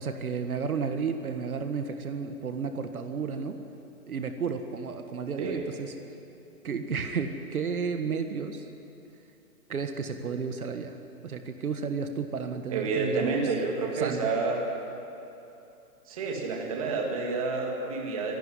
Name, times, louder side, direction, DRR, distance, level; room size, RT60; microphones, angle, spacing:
voice 1, 0.0-3.6 4.1-5.9 6.6-8.7 9.7-11.0 11.2-13.5 13.9-14.3, right 5 dB, 65° right, 7 dB, 1.7 m, -32 dB
voice 2, 12.7-14.6 16.1-18.4, right 4 dB, 25° right, 0 dB, 2.1 m, -29 dB
24.5 x 12.0 x 9.9 m, 2.8 s
hypercardioid pair, 180°, 46 cm